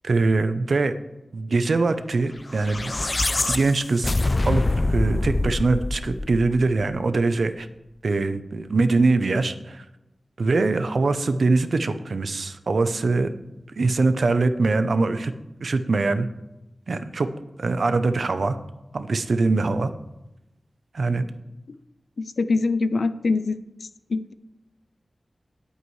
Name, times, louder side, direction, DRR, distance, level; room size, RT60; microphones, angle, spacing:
voice 1, 0.0-0.9 1.3-2.9 3.5-4.1 4.4-7.7 8.0-9.8 10.4-13.3 13.8-15.3 15.6-16.3 16.9-17.3 17.6-18.6 18.9-19.9 20.9-21.3, right 3 dB, 75° right, 10 dB, 0.7 m, -22 dB
sound 1, 2.5-6.9, left 2 dB, 35° left, 0.4 m, -25 dB
voice 2, 22.2-23.6 24.1-24.3, left 3 dB, 85° left, 13 dB, 0.5 m, -23 dB
18.0 x 8.1 x 3.2 m, 0.96 s
wide cardioid pair, 75°, 0 cm